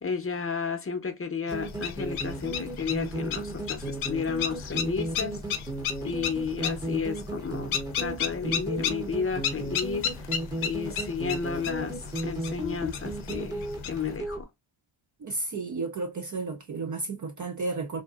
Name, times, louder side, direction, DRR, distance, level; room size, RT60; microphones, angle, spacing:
voice 1, 0.0-5.4 6.0-10.3 10.6-14.5, left 5 dB, 25° left, 0.7 m, -32 dB
sound 1, 1.5-14.2, left 8 dB, 75° left, 0.6 m, -35 dB
sound 2, 1.5-14.4, right 1 dB, 10° right, 0.7 m, -35 dB
voice 2, 15.2-18.0, right 3 dB, 40° right, 0.5 m, -32 dB
2.7 x 2.5 x 2.3 m
cardioid pair, 75°, 49 cm